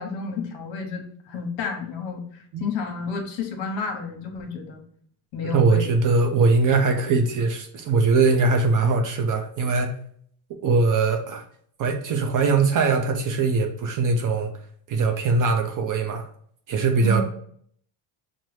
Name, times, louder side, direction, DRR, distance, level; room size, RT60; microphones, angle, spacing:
voice 1, 0.0-4.8 5.3-5.9 17.0-17.2, left 4 dB, 65° left, 2 dB, 0.9 m, -31 dB
voice 2, 5.4-9.9 10.6-11.4 11.8-14.5 14.9-16.3 16.7-17.2, right 4 dB, 40° right, 4 dB, 0.5 m, -21 dB
5.5 x 2.1 x 3.1 m, 0.62 s
cardioid pair, 110°, 48 cm